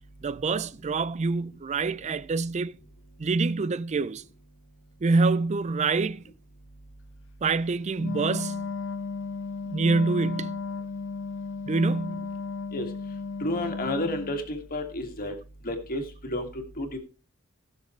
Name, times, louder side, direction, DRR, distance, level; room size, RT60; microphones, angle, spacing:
voice 1, 0.2-2.8 3.2-4.2 5.0-6.2 7.4-8.7 9.7-10.6 11.6-12.3, right 3 dB, 30° right, 0.4 m, -26 dB
Wind instrument woodwind instrument, 7.9-14.4, left 4 dB, 60° left, 0.9 m, -34 dB
voice 2, 13.4-15.3 15.6-17.0, left 1 dB, 40° left, 2.1 m, -31 dB
19.0 x 6.5 x 3.2 m
head